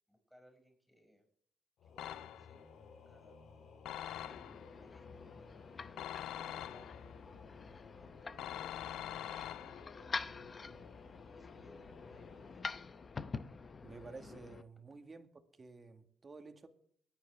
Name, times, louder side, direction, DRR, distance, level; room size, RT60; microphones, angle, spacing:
voice 1, 0.1-1.3 1.8-2.7 2.9-3.4 4.1-7.1 7.6-10.8 11.2-13.1, equal, ahead, 6.6 m, -65 dB
Singing / Musical instrument, 1.8-14.3, left 5 dB, 65° left, 1.8 m, -57 dB
sound 1, 2.0-2.7 3.8-4.7 6.0-7.2 8.4-10.0, left 12 dB, 85° left, 0.4 m, -44 dB
sound 2, 4.0-14.6, left 4 dB, 35° left, 0.7 m, -47 dB
voice 2, 13.8-15.3 15.5-16.7, right 3 dB, 30° right, 1.9 m, -52 dB
23.5 x 9.8 x 3.5 m
cardioid pair, 90°, 0 cm